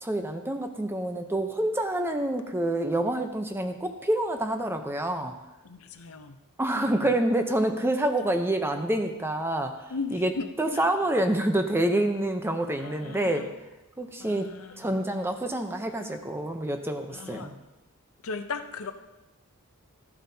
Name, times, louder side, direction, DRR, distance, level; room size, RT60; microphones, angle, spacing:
voice 1, 0.0-5.3 6.6-9.7 10.1-10.3 10.6-13.4 14.0-14.5 14.8-17.5, right 1 dB, 10° right, 5 dB, 0.7 m, -27 dB
voice 2, 5.6-6.4 6.8-7.1 9.9-10.5 10.7-10.9 12.8-13.5 14.2-14.9 17.1-17.5 18.2-18.9, left 4 dB, 70° left, 8 dB, 0.7 m, -37 dB
13.5 x 7.9 x 2.8 m, 1.0 s
head